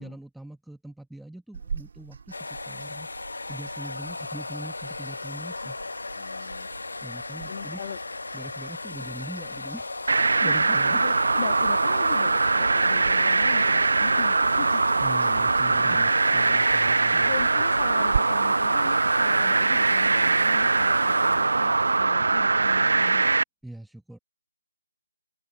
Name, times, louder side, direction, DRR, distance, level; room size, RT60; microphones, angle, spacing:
voice 1, 0.0-3.1 3.5-5.8 7.0-7.8 8.3-10.0 10.4-11.0 15.0-17.3 23.6-24.2, right 1 dB, ahead, 1.0 m, -41 dB
sound 1, 1.5-18.2, right 6 dB, 35° right, 2.0 m, -41 dB
sound 2, 2.3-22.0, left 3 dB, 75° left, 0.7 m, -37 dB
voice 2, 6.1-6.7 7.5-8.0 9.0-9.1 10.4-10.6 10.9-14.8 17.2-23.3, left 10 dB, 20° left, 1.5 m, -39 dB
sound 3, 10.1-23.4, right 3 dB, 60° right, 0.8 m, -22 dB
figure-of-eight pair, 175°, 0 cm